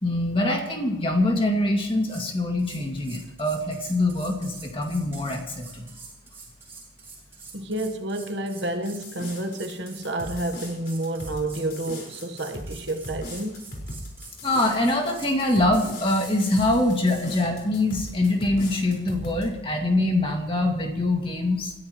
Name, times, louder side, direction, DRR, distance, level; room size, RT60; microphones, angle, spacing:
voice 1, 0.0-5.9 14.4-21.7, left 1 dB, 25° left, 2.2 m, -24 dB
sound 1, 1.8-2.3 2.6-16.7, right 4 dB, 15° right, 5.9 m, -46 dB
voice 2, 7.5-13.6, right 1 dB, 65° right, 1.3 m, -30 dB
sound 2, 8.8-19.4, left 1 dB, 55° left, 5.1 m, -39 dB
29.0 x 14.0 x 3.1 m
head